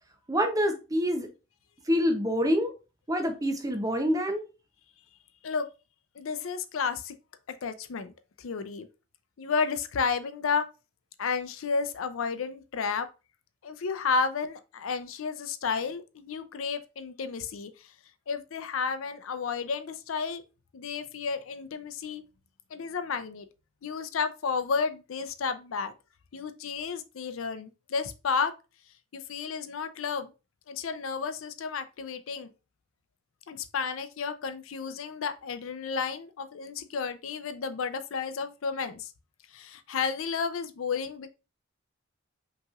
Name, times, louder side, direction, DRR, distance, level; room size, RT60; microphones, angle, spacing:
voice 1, 0.3-1.3 1.9-2.7 3.1-4.4, equal, 15° right, 0.6 m, -26 dB
voice 2, 6.2-7.1 7.5-8.1 8.4-8.9 9.4-10.7 11.2-13.1 13.6-17.9 18.3-20.4 20.7-22.2 22.7-23.5 23.8-25.9 26.3-28.5 29.1-30.3 30.7-32.5 33.5-39.1 39.5-41.3, left 5 dB, 85° left, 0.5 m, -32 dB
5.3 x 3.0 x 2.4 m
head